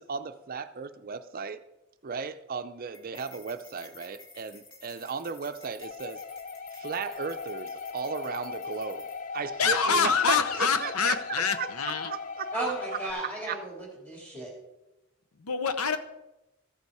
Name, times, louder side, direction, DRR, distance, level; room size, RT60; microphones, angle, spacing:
voice 1, 0.0-1.6 2.0-6.2 6.7-9.1 9.3-11.7 12.0-12.5 13.2-13.6, right 5 dB, 40° right, 10 dB, 0.5 m, -35 dB
sound 1, 2.9-9.4, left 4 dB, 60° left, 1.9 m, -53 dB
sound 2, 5.8-13.1, left 5 dB, 35° left, 0.5 m, -38 dB
voice 2, 9.6-12.1 15.4-16.0, left 6 dB, 90° left, 9 dB, 0.9 m, -26 dB
voice 3, 12.5-14.5, right 2 dB, 5° left, -2 dB, 3.2 m, -34 dB
14.0 x 7.0 x 4.8 m, 0.97 s
head